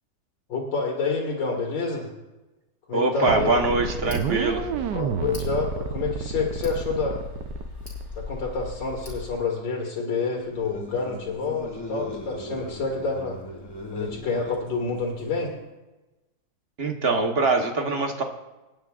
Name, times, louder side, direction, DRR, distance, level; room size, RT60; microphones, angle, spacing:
voice 1, 0.5-2.1 2.9-3.6 4.9-7.2 8.2-13.4 13.9-15.5, left 4 dB, 85° left, -1 dB, 2.4 m, -28 dB
voice 2, 2.9-4.7 16.8-18.2, right 3 dB, 40° right, 4 dB, 1.1 m, -23 dB
sound 1, 3.2-8.1, right 8 dB, 75° right, 1.3 m, -30 dB
Tick, 3.3-9.3, left 3 dB, 45° left, 4.7 m, -38 dB
sound 2, 10.5-15.6, left 2 dB, 15° left, 1.5 m, -39 dB
26.5 x 9.4 x 2.4 m, 1.1 s
omnidirectional pair, 2.0 m